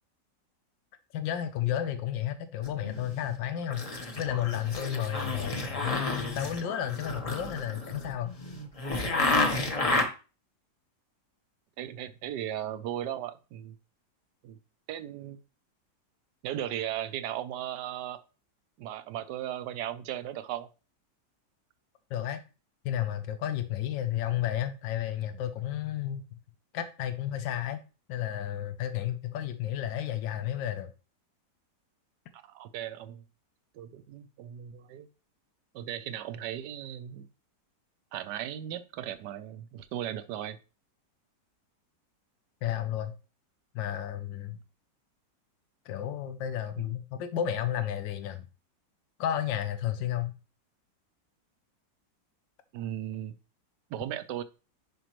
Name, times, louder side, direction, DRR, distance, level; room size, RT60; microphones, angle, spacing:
voice 1, 1.1-3.9 4.2-8.3 22.1-22.4 22.8-26.3 26.7-27.8 28.1-30.9 42.6-43.1 43.7-44.6 45.9-48.5 49.2-50.3, left 11 dB, 85° left, 1.4 m, -32 dB
sound 1, 2.6-3.4 3.7-10.0, left 2 dB, 25° left, 1.0 m, -31 dB
voice 2, 11.8-13.8 14.4-14.6 14.9-15.4 16.4-18.2 18.8-20.7 32.3-33.2 33.7-35.1 35.7-37.2 38.1-40.6 46.8-46.9 52.7-53.3 53.9-54.4, right 11 dB, 75° right, 1.2 m, -37 dB
10.0 x 5.4 x 3.1 m
omnidirectional pair, 1.9 m